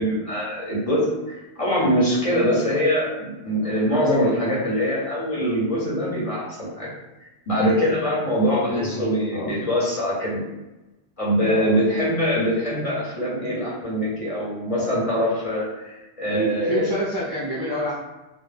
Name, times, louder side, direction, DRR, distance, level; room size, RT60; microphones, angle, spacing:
voice 1, 0.0-6.9 7.5-10.4 11.2-16.9, equal, 40° left, -7 dB, 0.7 m, -23 dB
voice 2, 8.7-9.5 11.5-11.8 16.3-18.0, equal, 35° right, -7 dB, 0.4 m, -28 dB
2.2 x 2.1 x 3.2 m, 1.0 s
omnidirectional pair, 1.1 m